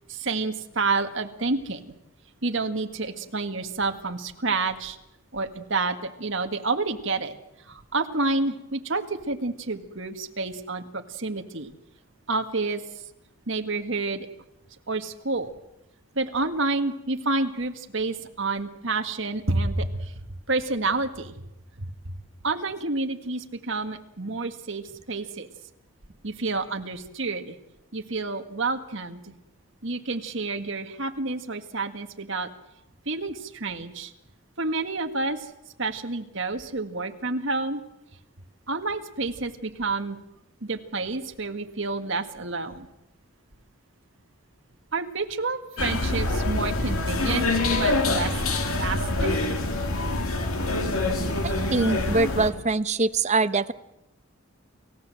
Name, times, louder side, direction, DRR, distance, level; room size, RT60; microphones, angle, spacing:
voice 1, 0.1-1.9 2.4-5.0 5.3-7.3 7.7-11.7 12.3-12.8 13.5-14.3 14.9-15.5 16.2-20.1 20.5-21.4 21.8-22.1 22.4-25.5 26.2-27.6 27.9-29.2 29.8-32.5 33.1-34.1 34.6-35.5 35.8-37.8 38.7-40.2 40.6-42.9 44.9-48.3 48.7-49.4, right 3 dB, 60° right, 6 dB, 1.8 m, -29 dB
sound 1, 45.8-52.5, left 2 dB, 80° left, 2.8 m, -25 dB
voice 2, 51.4-53.7, right 3 dB, 30° right, 12 dB, 0.7 m, -23 dB
29.0 x 16.0 x 7.7 m, 0.87 s
head